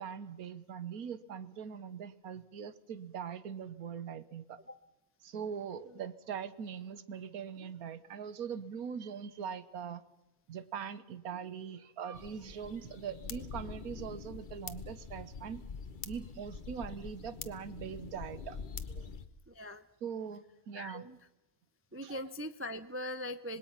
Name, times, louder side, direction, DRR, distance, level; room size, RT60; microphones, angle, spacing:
voice 1, 0.0-4.6 5.2-10.0 10.5-15.6 16.0-18.6 18.9-19.1 20.0-21.1 22.0-22.2 23.5-23.6, right 7 dB, 85° right, 14 dB, 1.5 m, -42 dB
sound 1, 12.1-19.3, left 5 dB, 40° left, 1.0 m, -45 dB
voice 2, 19.5-19.8 20.7-21.2 21.9-23.6, left 1 dB, 20° right, 10 dB, 0.3 m, -41 dB
25.5 x 20.5 x 5.7 m, 0.96 s
omnidirectional pair, 1.5 m